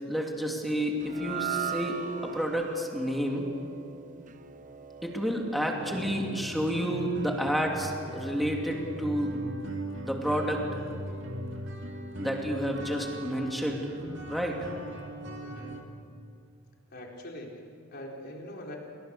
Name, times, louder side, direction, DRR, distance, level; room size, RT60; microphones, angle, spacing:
voice 1, 0.1-2.0 2.2-3.5 5.0-9.4 10.0-10.6 12.2-13.9 14.3-14.7, equal, ahead, 0 dB, 2.8 m, -30 dB
sound 1, 1.0-7.4, right 7 dB, 40° right, 0.8 m, -39 dB
sound 2, 5.8-15.8, right 1 dB, 60° right, 2.5 m, -39 dB
voice 2, 15.4-15.9 16.9-17.6 17.9-18.8, left 1 dB, 50° left, 0 dB, 4.2 m, -42 dB
28.5 x 23.0 x 6.9 m, 2.3 s
head